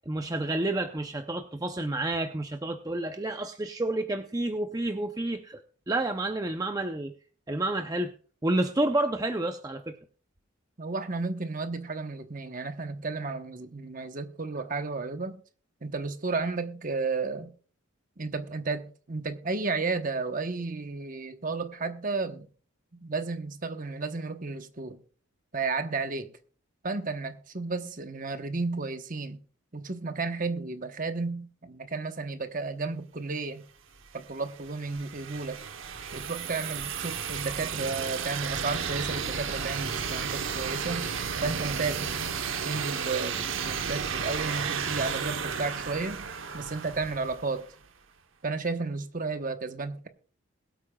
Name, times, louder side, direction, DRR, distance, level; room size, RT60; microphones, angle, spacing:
voice 1, 0.1-5.6 5.9-7.1 7.5-8.1 8.4-10.0, right 2 dB, 15° right, 0.6 m, -29 dB
voice 2, 10.8-15.4 15.8-17.5 18.2-22.5 22.9-25.0 25.5-26.3 26.8-29.4 29.7-33.6 34.1-35.6 36.1-41.1 41.4-42.1 42.6-46.2 46.5-47.7 48.4-50.1, right 3 dB, 40° right, 1.0 m, -33 dB
sound 1, 34.0-47.7, right 6 dB, 65° right, 0.9 m, -33 dB
21.5 x 8.6 x 2.3 m
head